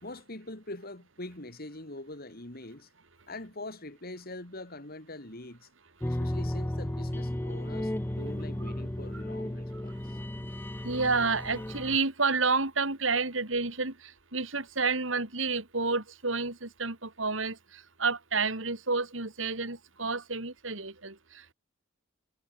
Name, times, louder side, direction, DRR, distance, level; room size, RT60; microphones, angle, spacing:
voice 1, 0.0-2.9 3.3-5.7 6.0-10.2, left 2 dB, 50° left, 4.4 m, -43 dB
sound 1, 6.0-12.0, left 1 dB, 10° left, 0.6 m, -34 dB
voice 2, 10.8-21.5, right 4 dB, 75° right, 3.7 m, -30 dB
head